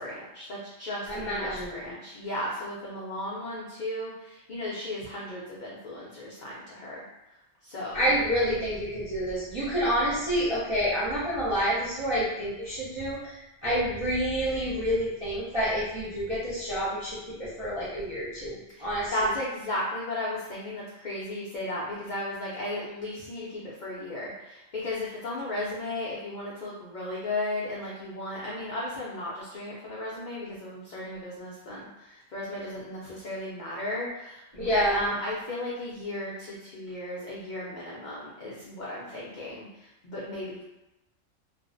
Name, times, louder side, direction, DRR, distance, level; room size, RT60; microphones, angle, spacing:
voice 1, 0.0-7.0 7.6-8.0 18.7-18.9 19.1-40.6, left 1 dB, 85° left, -6 dB, 0.4 m, -35 dB
voice 2, 1.1-1.9 7.9-19.3 34.5-35.1, equal, 60° right, -11 dB, 0.3 m, -28 dB
2.4 x 2.0 x 2.5 m, 0.94 s
omnidirectional pair, 1.4 m